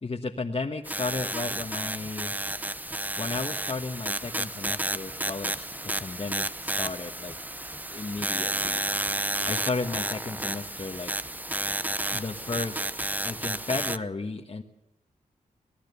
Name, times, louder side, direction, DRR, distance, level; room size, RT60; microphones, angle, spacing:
voice 1, 0.0-2.4 3.2-7.3 7.9-8.8 9.4-11.1 12.1-14.6, left 3 dB, 40° left, 1 dB, 1.4 m, -34 dB
sound 1, 0.9-14.0, right 1 dB, 10° right, 0.8 m, -31 dB
24.5 x 17.5 x 6.9 m, 0.86 s
cardioid pair, 65°, 15 cm